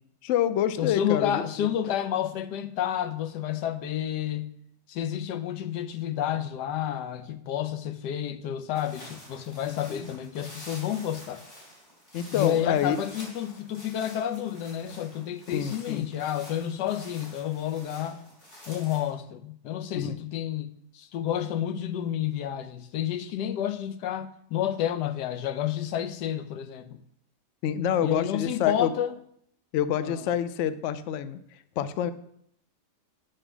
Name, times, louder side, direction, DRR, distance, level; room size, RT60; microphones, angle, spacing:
voice 1, 0.2-1.7 9.7-10.1 12.1-13.0 15.5-16.1 19.9-20.2 23.4-23.6 27.6-28.9 29.7-31.4 31.8-32.1, left 9 dB, 70° left, 0.7 m, -27 dB
voice 2, 0.8-4.5 4.9-11.4 12.3-18.2 18.7-27.0 28.0-29.1 30.0-30.3, left 10 dB, 90° left, 1.3 m, -30 dB
sound 1, 8.7-19.1, equal, 45° left, 4.0 m, -48 dB
8.8 x 4.4 x 6.1 m
omnidirectional pair, 1.8 m